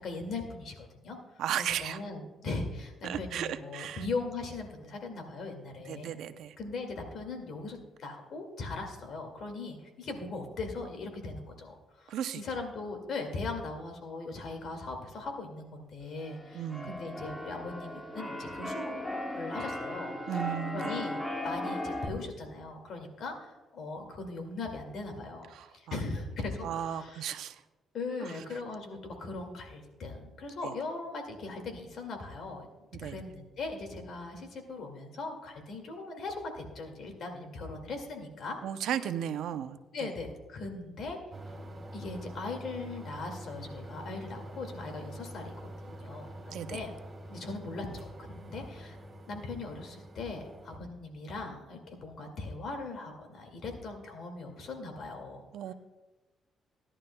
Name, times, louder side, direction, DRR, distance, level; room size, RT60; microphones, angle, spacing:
voice 1, 0.0-6.1 6.6-20.1 20.7-27.2 27.9-32.7 33.0-38.6 39.9-41.2 41.9-46.9 47.3-49.0 49.3-55.7, left 3 dB, 65° left, 4 dB, 2.1 m, -39 dB
voice 2, 1.4-2.0 3.0-4.0 5.9-6.5 12.1-12.4 16.5-16.9 20.3-21.1 25.5-26.0 26.6-27.6 28.2-28.3 30.6-30.7 32.9-33.2 38.6-39.8 46.5-46.8 55.5-55.7, right 10 dB, 80° right, 10 dB, 0.6 m, -35 dB
Keyboard (musical), 16.2-22.1, left 1 dB, 15° left, 1.7 m, -37 dB
sound 1, 41.3-50.8, right 1 dB, 25° right, 2.6 m, -46 dB
17.0 x 11.0 x 2.2 m, 1.2 s
cardioid pair, 90°, 0 cm